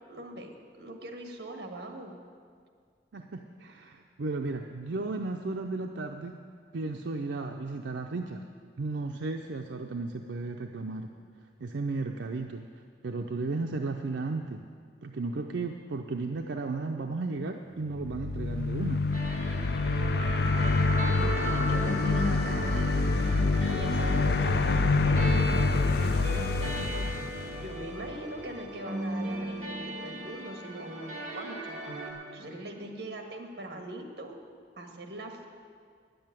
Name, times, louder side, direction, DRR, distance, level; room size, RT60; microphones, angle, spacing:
voice 1, 0.1-2.2 20.8-22.9 23.7-25.2 25.7-27.2 27.6-31.7 32.3-34.4 34.8-35.5, right 1 dB, 60° right, 3 dB, 1.6 m, -41 dB
voice 2, 3.1-6.3 6.7-8.4 8.8-11.1 11.6-12.7 13.0-14.6 15.0-19.1, right 3 dB, 85° right, 3 dB, 0.6 m, -34 dB
sound 1, 17.9-28.2, left 3 dB, 60° left, 0.5 m, -27 dB
sound 2, 19.1-32.1, right 1 dB, 45° right, 2.6 m, -37 dB
10.5 x 7.8 x 9.0 m, 2.1 s
head